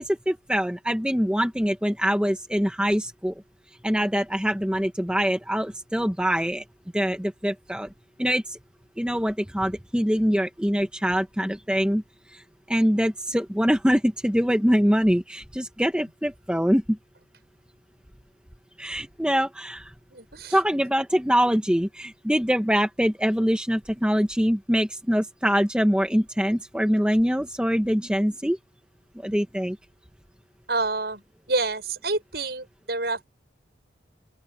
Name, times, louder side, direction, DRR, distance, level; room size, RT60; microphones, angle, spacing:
voice 1, 0.0-3.3 3.8-6.6 6.9-7.9 8.2-8.6 9.0-12.0 12.3-12.4 12.7-17.0 18.8-19.9 20.5-28.6 29.2-29.8, equal, 5° right, 1.3 m, -24 dB
voice 2, 20.1-20.6 30.7-31.2 31.5-33.2, right 3 dB, 60° right, 7.4 m, -28 dB
open air
head